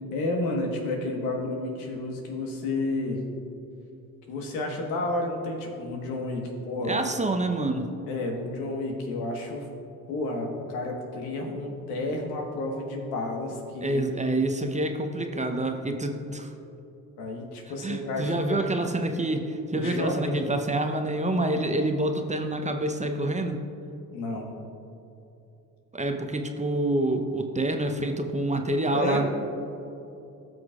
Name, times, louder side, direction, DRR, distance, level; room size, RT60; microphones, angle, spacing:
voice 1, 0.1-3.2 4.3-7.0 8.1-9.7 10.1-14.0 17.2-18.6 19.7-20.3 24.1-24.5 28.9-29.3, left 2 dB, 75° left, 1 dB, 1.5 m, -31 dB
voice 2, 6.8-7.9 13.8-16.5 17.8-23.7 25.9-29.3, right 1 dB, 15° right, 5 dB, 0.8 m, -27 dB
16.0 x 6.2 x 2.4 m, 2.8 s
hypercardioid pair, 55°, 42 cm